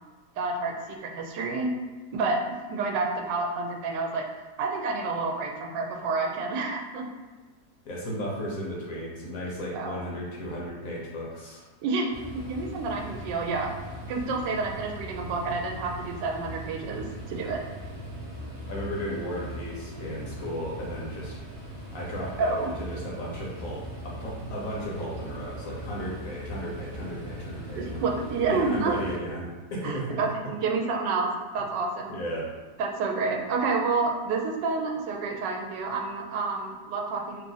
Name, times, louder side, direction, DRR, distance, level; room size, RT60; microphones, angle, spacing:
voice 1, 0.4-0.7 1.0-1.7 2.1-2.4 2.7-4.2 4.6-7.0 9.7-10.0 11.8-13.7 14.1-17.6 22.4-22.7 27.8-28.9 29.8-32.2 32.8-37.4, right 4 dB, 85° right, 1 dB, 1.2 m, -29 dB
voice 2, 7.8-11.6 18.7-21.3 21.9-23.8 24.0-28.0 28.5-30.2 32.1-32.5, equal, 60° left, -4 dB, 1.0 m, -35 dB
sound 1, 12.1-29.2, equal, 40° right, 0.7 m, -40 dB
2.9 x 2.5 x 3.8 m, 1.3 s
omnidirectional pair, 1.8 m